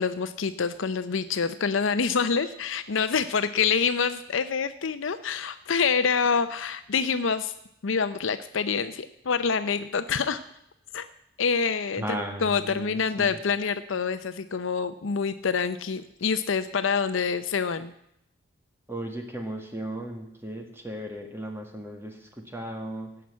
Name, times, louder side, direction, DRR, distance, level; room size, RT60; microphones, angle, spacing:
voice 1, 0.0-7.5 7.8-10.4 10.9-11.1 11.4-17.9, left 5 dB, 80° left, 11 dB, 0.6 m, -26 dB
voice 2, 12.0-13.4 18.9-23.1, right 1 dB, 10° right, 3 dB, 1.7 m, -36 dB
17.0 x 5.9 x 8.4 m, 0.76 s
head